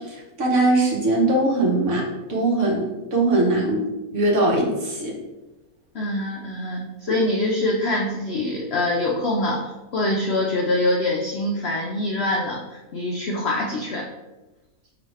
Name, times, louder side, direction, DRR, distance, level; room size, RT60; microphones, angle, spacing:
voice 1, 0.4-3.8 4.1-5.1, right 2 dB, 55° right, -2 dB, 1.2 m, -21 dB
voice 2, 5.9-14.1, left 1 dB, 70° left, 0 dB, 0.6 m, -24 dB
4.8 x 3.0 x 3.1 m, 1.1 s
omnidirectional pair, 1.6 m